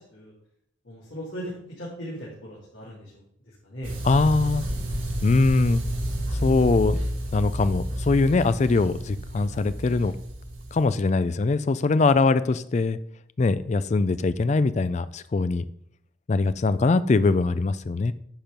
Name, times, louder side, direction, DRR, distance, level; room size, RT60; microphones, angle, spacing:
voice 1, 0.8-1.5 1.8-3.2 3.6-3.9, equal, 65° left, -8 dB, 3.0 m, -38 dB
sound 1, 3.8-10.9, right 1 dB, 75° right, 2.8 m, -30 dB
voice 2, 4.0-4.7 5.2-5.8 6.4-7.0 7.3-10.1 10.7-13.0 13.4-15.6 16.3-18.1, left 3 dB, 35° left, 14 dB, 0.3 m, -22 dB
10.5 x 4.5 x 5.1 m, 0.71 s
head